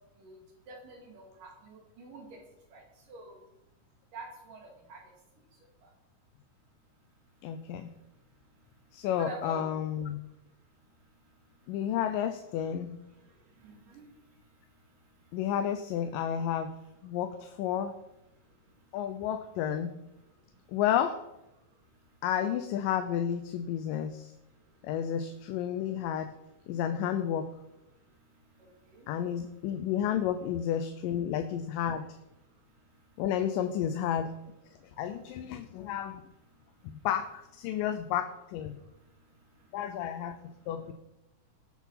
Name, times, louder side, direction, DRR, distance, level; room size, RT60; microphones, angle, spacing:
voice 1, 0.7-2.3 2.7-2.8 3.1-3.4 4.1-5.0 9.1-9.6 13.6-14.0, right 2 dB, 75° right, -1 dB, 4.3 m, -45 dB
voice 2, 7.4-7.9 8.9-10.2 11.7-12.9 15.3-16.8 17.0-17.9 18.9-19.9 20.7-21.2 22.2-24.3 24.8-26.3 26.7-27.5 29.1-32.1 33.2-34.3 35.0-36.2 36.8-38.7 39.7-40.4 40.7-40.9, left 9 dB, 90° left, 7 dB, 2.5 m, -31 dB
19.0 x 7.4 x 5.8 m, 0.89 s
omnidirectional pair, 3.8 m